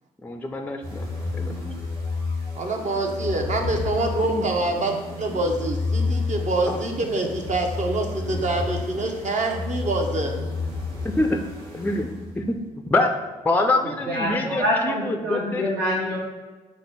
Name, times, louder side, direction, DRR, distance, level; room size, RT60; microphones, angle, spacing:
voice 1, 0.2-1.0 1.3-1.5 4.3-4.5 6.7-6.8 11.0-11.4 11.7-12.1 12.3-12.6 12.9-13.1 13.4-15.6, left 2 dB, 10° left, 5 dB, 0.5 m, -25 dB
sound 1, 0.8-12.6, left 3 dB, 85° right, 1.0 m, -31 dB
voice 2, 2.5-10.3, right 2 dB, 40° right, 2 dB, 0.8 m, -25 dB
voice 3, 14.1-16.2, left 1 dB, 65° right, -5 dB, 1.2 m, -25 dB
5.2 x 2.1 x 4.6 m, 1.3 s
hypercardioid pair, 45°, 18 cm